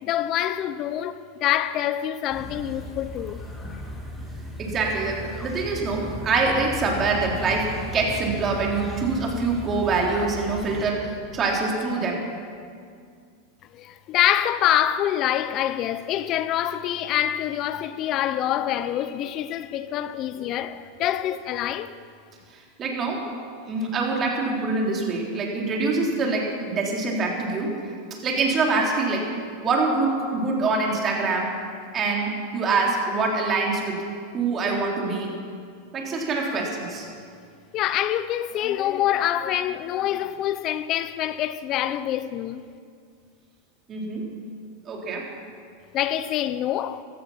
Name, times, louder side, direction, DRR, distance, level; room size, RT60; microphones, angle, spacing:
voice 1, 0.0-3.4 13.7-21.9 37.7-42.7 45.9-47.0, left 11 dB, 40° left, 0.6 m, -26 dB
sound 1, 2.3-10.8, left 1 dB, 5° left, 3.0 m, -36 dB
voice 2, 4.6-12.2 22.5-23.2 23.7-27.9 28.2-29.3 29.6-31.5 31.9-34.1 34.3-35.3 35.9-37.1 43.9-44.3 44.9-45.3, right 3 dB, 30° right, 3.6 m, -25 dB
16.0 x 13.5 x 5.7 m
hypercardioid pair, 120°, 0 cm